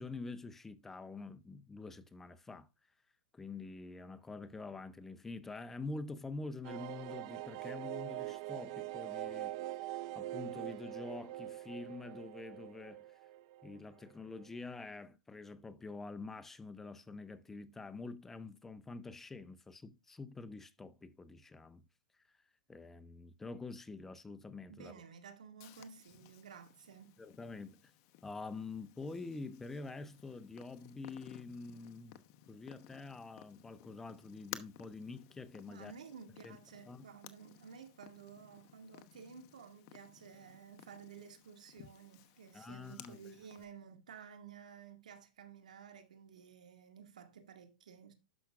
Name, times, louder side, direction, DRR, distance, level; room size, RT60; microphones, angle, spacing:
voice 1, 0.0-2.7 3.3-9.6 10.1-13.1 13.6-21.8 22.3-22.4 22.7-24.9 27.2-27.9 28.2-32.2 32.5-35.9 36.4-36.6 36.9-37.1 42.5-43.2, left 3 dB, 10° left, 0.5 m, -46 dB
sound 1, 6.6-14.1 14.4-14.5 14.7-14.8, right 16 dB, 45° right, 0.5 m, -43 dB
voice 2, 24.7-27.2 35.7-48.1, right 7 dB, 90° right, 1.9 m, -53 dB
Purr, 25.6-43.6, left 13 dB, 40° left, 0.9 m, -56 dB
12.0 x 5.7 x 2.4 m
hypercardioid pair, 145°, 4 cm